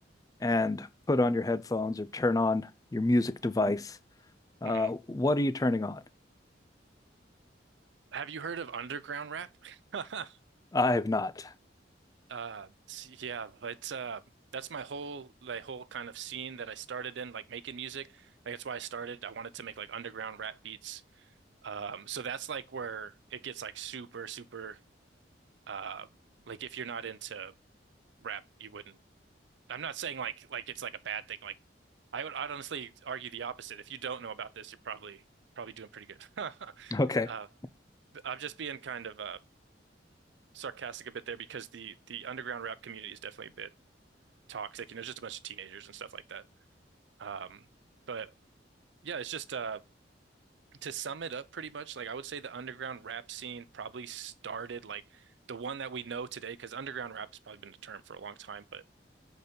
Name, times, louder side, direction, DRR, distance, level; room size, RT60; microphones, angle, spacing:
voice 1, 0.4-4.0 4.6-6.0 10.7-11.5 36.9-37.3, left 2 dB, 20° left, 0.4 m, -28 dB
voice 2, 8.1-10.4 12.3-14.2 14.5-21.0 21.6-24.8 25.7-26.1 26.5-27.5 28.2-29.0 29.7-31.5 32.1-35.2 35.6-37.5 38.1-39.4 40.5-43.7 44.5-46.4 47.2-47.7 48.1-48.3 49.0-49.8 50.8-58.8, right 7 dB, 75° right, 0.5 m, -40 dB
7.8 x 4.1 x 5.2 m
head